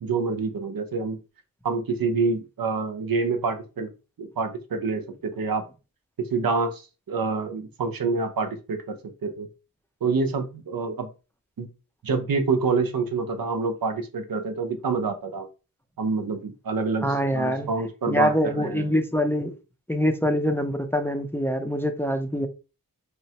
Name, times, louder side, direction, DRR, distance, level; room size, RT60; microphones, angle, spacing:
voice 1, 0.0-1.2 1.6-3.9 4.2-5.6 6.3-9.0 9.2-9.5 10.0-11.1 11.6-11.7 12.0-15.5 16.0-18.9, right 4 dB, 70° right, 0.6 m, -27 dB
voice 2, 17.0-17.7 18.1-19.6 19.9-22.5, equal, 5° left, 0.5 m, -24 dB
3.0 x 2.1 x 2.8 m
cardioid pair, 45°, 36 cm